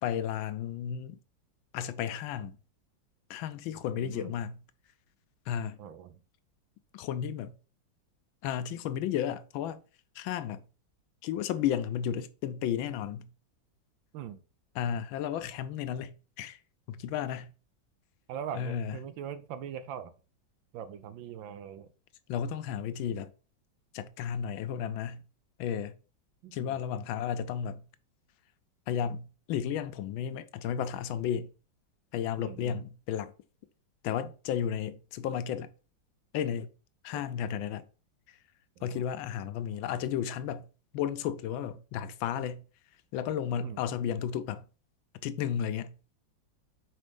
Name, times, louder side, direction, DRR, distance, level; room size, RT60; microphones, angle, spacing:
voice 1, 0.0-1.2 1.7-2.6 3.3-4.6 5.5-5.8 6.9-7.5 8.4-9.8 10.2-10.6 11.2-13.3 14.8-16.6 16.9-17.5 18.5-19.0 22.3-23.3 23.9-25.3 25.6-25.9 26.5-27.9 28.9-31.5 32.1-33.3 34.0-35.7 36.3-36.7 37.0-37.8 38.8-40.7 40.9-42.6 43.1-44.6 45.2-45.9, left 9 dB, 85° left, 1.4 m, -33 dB
voice 2, 4.0-4.3 5.8-6.2 14.1-14.4 18.3-20.1 20.7-21.9 26.4-26.8 32.4-32.8 37.1-37.3 38.8-39.0 43.6-43.8, right 9 dB, 80° right, 1.4 m, -41 dB
4.6 x 4.3 x 5.1 m
omnidirectional pair, 2.1 m